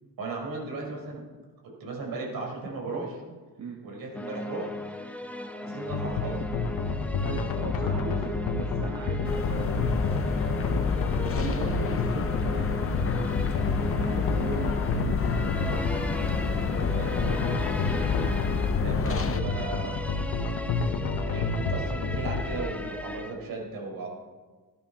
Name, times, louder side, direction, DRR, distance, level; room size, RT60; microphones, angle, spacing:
voice 1, 0.2-1.2 1.6-3.2 3.8-4.7 5.6-6.4 11.2-11.4 16.9-17.3 18.8-20.0 21.2-24.1, right 3 dB, 70° right, -1 dB, 5.3 m, -36 dB
sound 1, 4.1-23.3, left 1 dB, 5° left, 0.9 m, -37 dB
sound 2, 5.9-22.6, left 4 dB, 65° left, 1.3 m, -30 dB
voice 2, 7.2-10.8 11.2-12.9 14.0-16.1 16.6-16.9 18.8-19.0, right 4 dB, 50° right, 2 dB, 1.4 m, -39 dB
sound 3, 9.2-19.4, left 5 dB, 40° left, 0.8 m, -30 dB
16.5 x 12.5 x 5.9 m, 1.4 s
wide cardioid pair, 170°, 36 cm